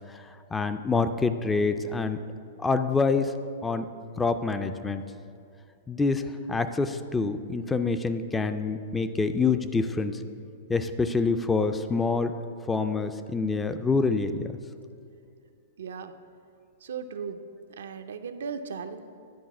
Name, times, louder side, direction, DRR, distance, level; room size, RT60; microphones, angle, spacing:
voice 1, 0.5-2.2 2.6-3.3 3.6-3.9 4.2-5.0 5.9-10.2 10.7-12.3 12.7-14.3, left 4 dB, 10° left, 9 dB, 0.3 m, -26 dB
voice 2, 15.8-16.1 16.8-17.4 17.8-19.0, right 6 dB, 85° right, 8 dB, 0.5 m, -36 dB
10.5 x 4.1 x 6.0 m, 2.4 s
hypercardioid pair, 145°, 0 cm